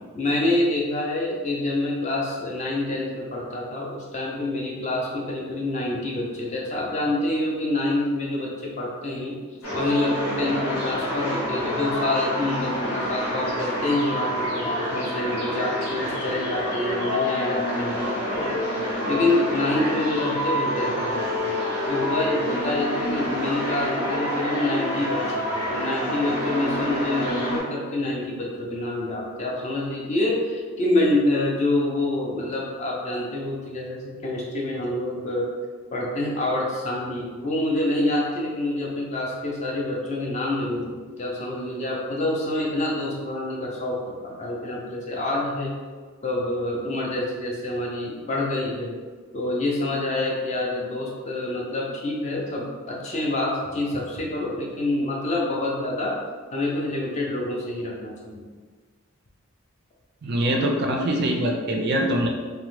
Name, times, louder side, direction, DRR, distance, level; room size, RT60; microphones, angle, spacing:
voice 1, 0.1-9.4 9.7-18.5 19.0-21.5 21.9-35.5 35.9-44.0 44.2-45.7 46.2-49.0 49.3-56.2 56.5-58.5, left 2 dB, 30° left, -3 dB, 0.4 m, -27 dB
sound 1, 9.6-27.6, left 1 dB, 80° left, 0.9 m, -27 dB
voice 2, 60.2-62.3, right 1 dB, 45° right, 1 dB, 0.3 m, -23 dB
2.9 x 2.1 x 3.0 m, 1.5 s
head